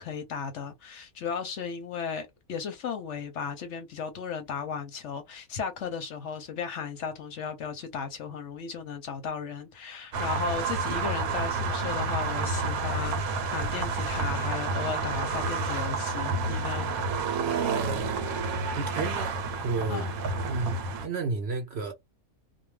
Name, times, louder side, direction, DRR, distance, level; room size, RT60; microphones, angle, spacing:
voice 1, 0.0-16.9 19.9-20.1, left 6 dB, 65° left, 0.8 m, -35 dB
sound 1, 10.1-21.1, right 4 dB, 75° right, 1.1 m, -29 dB
voice 2, 18.8-19.3 19.6-20.0 20.4-21.9, right 4 dB, 60° right, 0.7 m, -31 dB
2.3 x 2.2 x 3.1 m
omnidirectional pair, 1.5 m